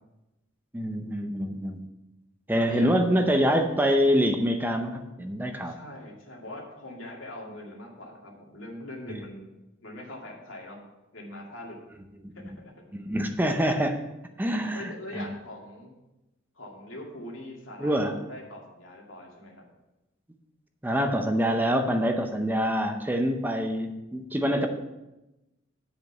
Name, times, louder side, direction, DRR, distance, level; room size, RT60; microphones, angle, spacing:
voice 1, 0.7-1.8 2.5-5.7 12.4-12.5 12.9-14.0 14.4-15.3 17.8-18.2 20.8-24.7, equal, 10° right, 6 dB, 0.6 m, -25 dB
voice 2, 2.6-3.2 5.6-9.5 9.8-10.8 11.1-11.8 12.3-12.7 14.4-15.9 16.5-19.6, left 1 dB, 80° left, -1 dB, 2.2 m, -42 dB
8.0 x 5.1 x 6.5 m, 0.98 s
head